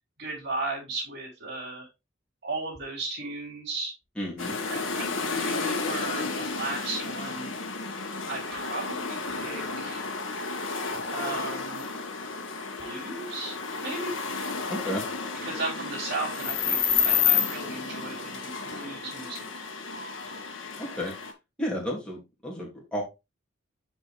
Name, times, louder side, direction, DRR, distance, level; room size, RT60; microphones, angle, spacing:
voice 1, 0.2-1.9 2.4-3.9 4.7-7.5 8.3-10.1 11.1-11.8 12.8-13.6 13.8-14.2 15.4-19.5, right 2 dB, 55° right, -4 dB, 3.4 m, -35 dB
voice 2, 4.2-4.5 14.7-15.0 20.8-21.1 21.6-23.0, equal, 5° left, -3 dB, 2.8 m, -32 dB
sound 1, 4.4-21.3, left 5 dB, 70° left, 2.0 m, -31 dB
9.6 x 5.2 x 3.4 m, 0.24 s
head